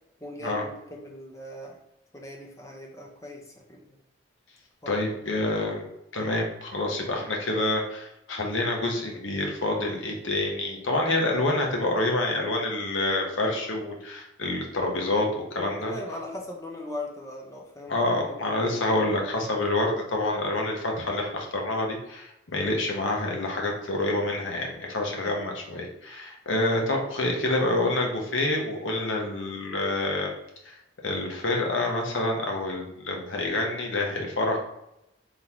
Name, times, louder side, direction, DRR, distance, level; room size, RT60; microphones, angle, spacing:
voice 1, 0.2-1.8 2.1-4.0 4.8-5.2 15.6-19.1 25.2-25.4, left 1 dB, 15° left, 0 dB, 0.7 m, -40 dB
voice 2, 4.9-15.9 17.9-30.3 30.6-30.7 31.0-34.6, left 2 dB, 80° left, 0 dB, 1.0 m, -27 dB
3.8 x 3.6 x 2.9 m, 0.86 s
head